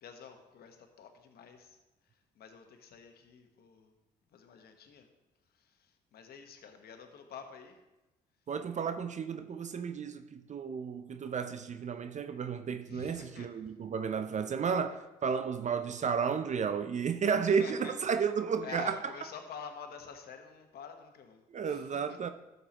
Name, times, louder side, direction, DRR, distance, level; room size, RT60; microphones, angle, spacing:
voice 1, 0.0-1.8 2.3-3.9 4.3-5.1 5.6-7.8 12.9-13.5 17.6-17.9 18.6-22.2, left 7 dB, 65° left, 1.3 m, -48 dB
voice 2, 8.5-19.2 21.5-22.3, right 6 dB, 45° right, 0.6 m, -32 dB
12.5 x 6.7 x 3.0 m
hypercardioid pair, 55°, 18 cm